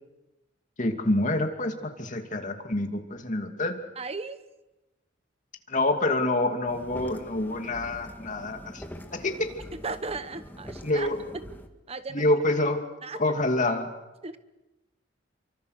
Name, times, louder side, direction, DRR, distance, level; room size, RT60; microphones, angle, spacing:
voice 1, 0.8-3.8 5.7-8.8 9.1-9.5 10.8-11.2 12.1-12.8 13.2-13.9, left 2 dB, 40° left, 5 dB, 2.6 m, -27 dB
voice 2, 4.0-4.4 9.7-11.5 11.9-12.3 13.0-13.2 14.2-14.4, right 4 dB, 30° right, 12 dB, 1.0 m, -36 dB
sound 1, 6.7-11.7, equal, 10° left, 1.8 m, -44 dB
29.0 x 24.5 x 6.6 m, 1.0 s
head